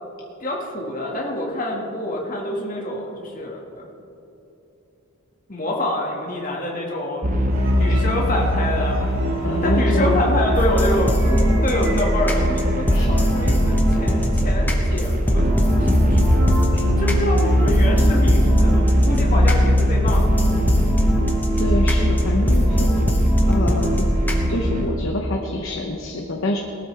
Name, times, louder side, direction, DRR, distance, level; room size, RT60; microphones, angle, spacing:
voice 1, 0.4-3.9 5.5-7.3 7.7-9.1 9.6-16.2 16.5-16.6 17.0-20.6, left 1 dB, 40° left, -2 dB, 1.9 m, -26 dB
sound 1, 7.2-24.9, equal, 35° right, 0.9 m, -21 dB
sound 2, 7.5-14.4, right 1 dB, 60° right, 1.6 m, -35 dB
voice 2, 9.4-10.2 12.9-13.1 16.7-16.8 21.6-22.9 23.5-24.1 24.5-26.6, left 1 dB, 65° left, 1 dB, 0.9 m, -26 dB
sound 3, 10.5-24.4, equal, 10° left, 1.1 m, -20 dB
18.5 x 12.5 x 3.4 m, 3.0 s
head